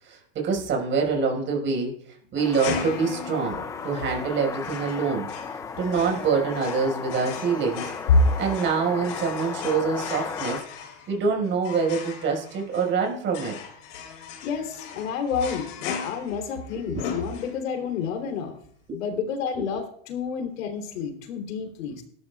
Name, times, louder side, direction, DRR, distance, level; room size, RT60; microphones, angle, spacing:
voice 1, 0.0-7.9 8.4-10.6 11.1-13.6 16.9-17.0 18.9-19.0 19.5-19.8, right 5 dB, 30° right, 0 dB, 5.1 m, -26 dB
sound 1, 2.4-10.6, left 5 dB, 10° left, 0.4 m, -35 dB
sound 2, 2.5-17.9, left 7 dB, 60° left, 4.4 m, -38 dB
voice 2, 14.4-18.5 18.9-22.0, left 4 dB, 85° left, 4 dB, 3.4 m, -28 dB
18.5 x 12.5 x 2.4 m, 0.62 s
supercardioid pair, 140°, 38 cm